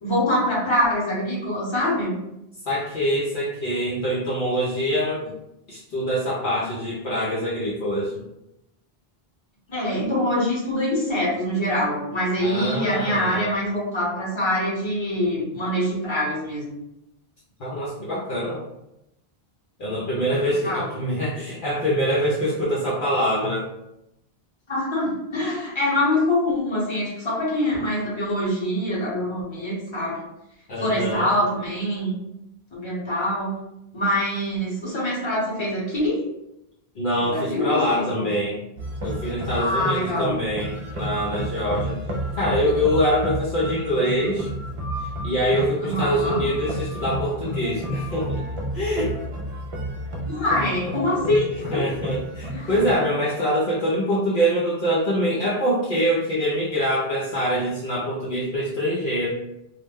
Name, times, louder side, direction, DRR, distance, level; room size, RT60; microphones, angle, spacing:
voice 1, 0.0-2.2 9.7-16.8 20.6-20.9 24.7-30.2 30.8-32.1 32.7-33.6 33.9-36.2 37.3-38.2 39.6-40.4 45.8-46.4 50.3-51.9 52.5-52.7, left 1 dB, 30° left, -6 dB, 0.9 m, -24 dB
voice 2, 2.7-5.3 5.7-8.1 12.4-13.5 17.6-18.6 19.8-23.7 30.7-31.3 37.0-38.6 39.0-42.0 42.4-44.5 45.0-48.4 48.7-49.2 51.7-59.3, equal, 60° left, -7 dB, 0.7 m, -24 dB
sound 1, 38.8-53.0, equal, 50° right, 0.3 m, -31 dB
2.3 x 2.1 x 3.4 m, 0.86 s
omnidirectional pair, 1.0 m